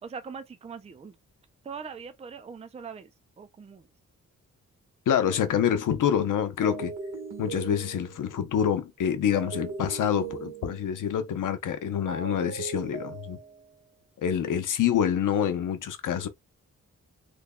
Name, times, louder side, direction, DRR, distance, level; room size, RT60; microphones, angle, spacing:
voice 1, 0.0-1.1 1.6-3.1 3.4-3.9, right 6 dB, 20° right, 0.4 m, -41 dB
voice 2, 5.1-6.9 7.4-13.4 14.2-16.3, left 9 dB, 80° left, 0.8 m, -26 dB
sound 1, 5.3-5.6 6.6-8.3 9.3-11.1 12.1-13.8, right 5 dB, 75° right, 1.5 m, -39 dB
3.2 x 2.2 x 3.6 m
wide cardioid pair, 145°, 31 cm